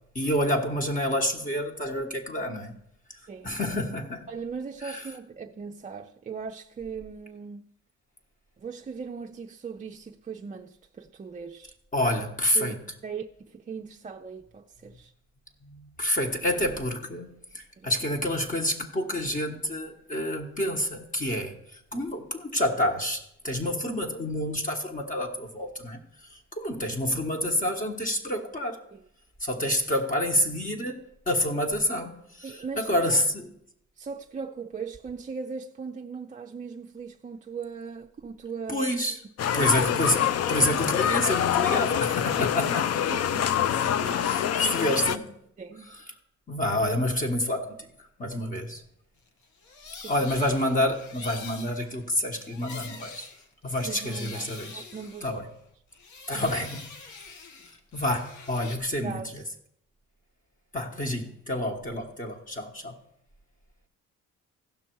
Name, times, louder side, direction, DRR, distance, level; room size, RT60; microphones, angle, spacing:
voice 1, 0.1-2.8 3.4-4.3 4.8-5.1 11.9-12.8 15.6-28.8 29.4-31.0 31.3-33.5 38.7-39.2 39.5-42.8 43.8-45.4 45.9-46.0 46.5-48.8 50.1-53.3 53.6-54.8 55.2-55.4 56.3-56.9 57.9-59.4 60.7-63.0, left 1 dB, 25° left, 1.3 m, -28 dB
voice 2, 3.3-3.6 4.3-7.7 8.6-11.8 12.5-15.1 17.8-17.9 28.9-29.0 32.4-33.2 34.0-38.9 39.4-39.8 42.6-42.7 43.1-43.7 44.0-44.4 45.6-46.0 50.0-50.1 53.8-55.3 56.3-56.5 59.0-59.3, right 5 dB, 25° right, 0.5 m, -39 dB
sound 1, 39.4-45.2, left 9 dB, 55° left, 0.5 m, -25 dB
sound 2, 49.4-55.6 55.9-58.8, left 4 dB, 75° left, 1.2 m, -45 dB
15.5 x 5.9 x 4.6 m
cardioid pair, 90°, 30 cm